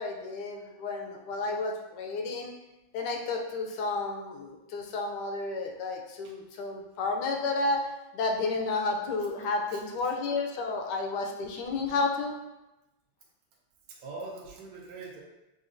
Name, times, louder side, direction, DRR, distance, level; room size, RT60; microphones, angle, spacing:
voice 1, 0.0-2.5 2.9-12.4, left 3 dB, 75° left, 2 dB, 1.0 m, -31 dB
voice 2, 13.9-15.2, right 3 dB, 65° right, -3 dB, 1.2 m, -42 dB
7.2 x 2.5 x 2.5 m, 0.98 s
omnidirectional pair, 2.3 m